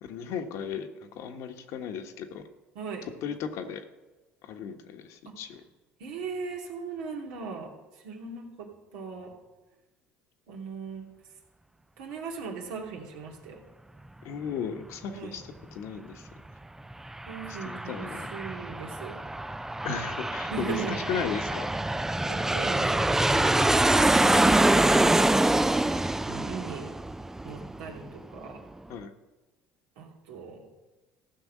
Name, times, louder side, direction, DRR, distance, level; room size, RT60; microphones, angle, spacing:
voice 1, 0.0-2.4 3.2-3.8 4.4-5.6 14.2-15.4 15.7-16.3 17.5-18.3 19.8-21.7 28.9-29.1, left 7 dB, 70° left, 6 dB, 1.4 m, -35 dB
voice 2, 2.7-3.1 5.2-5.3 6.0-7.7 8.0-9.3 10.5-11.1 12.0-13.6 15.1-15.4 17.3-19.2 20.5-21.0 22.3-23.9 26.3-26.9 27.4-28.6 30.0-30.7, right 5 dB, 80° right, 0 dB, 2.7 m, -38 dB
Aircraft, 16.9-28.1, right 1 dB, 10° right, 0.4 m, -25 dB
14.5 x 6.2 x 7.5 m, 1.2 s
supercardioid pair, 80°, 5 cm